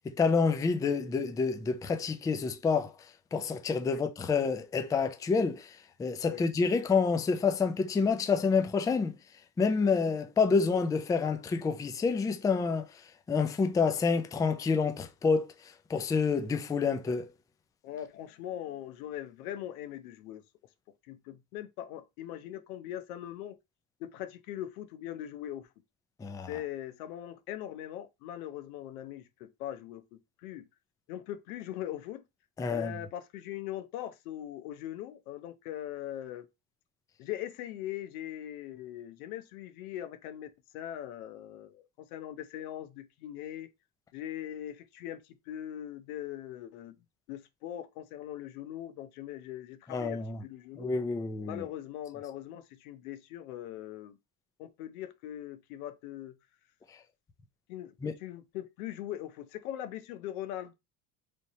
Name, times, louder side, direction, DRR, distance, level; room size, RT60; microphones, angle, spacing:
voice 1, 0.0-2.9 3.3-9.1 9.6-13.0 13.3-17.3 26.2-26.6 32.6-33.0 49.9-50.4 50.8-51.6 58.0-58.1, left 5 dB, 10° left, 0.3 m, -28 dB
voice 2, 17.8-20.4 21.1-23.6 24.0-25.7 26.5-30.6 31.1-32.2 32.7-36.5 37.2-43.7 44.1-45.2 45.5-46.9 47.3-50.9 51.5-54.2 54.6-56.3 57.7-60.7, left 12 dB, 90° left, 0.9 m, -41 dB
3.4 x 2.8 x 4.1 m
supercardioid pair, 120°, 42 cm